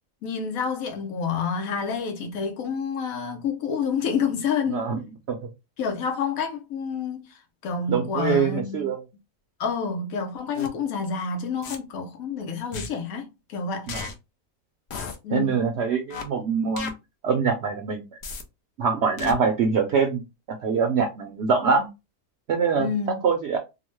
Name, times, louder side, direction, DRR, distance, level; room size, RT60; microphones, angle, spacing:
voice 1, 0.2-4.9 5.8-7.3 7.6-8.9 9.6-13.9 15.2-15.7 22.8-23.2, left 6 dB, 85° left, 1.2 m, -28 dB
voice 2, 4.7-5.0 5.3-5.4 7.9-9.0 13.9-14.0 15.3-16.9 17.2-18.0 18.8-20.2 20.5-21.9 22.5-22.9 23.2-23.6, right 5 dB, 65° right, 0.7 m, -24 dB
sound 1, 10.5-10.7 11.6-11.8 12.7-12.9 13.9-14.1 14.9-15.2 16.1-16.2 16.8-16.9 18.2-18.4 19.2-19.3, left 5 dB, 60° left, 0.8 m, -33 dB
2.9 x 2.1 x 3.0 m
omnidirectional pair, 1.4 m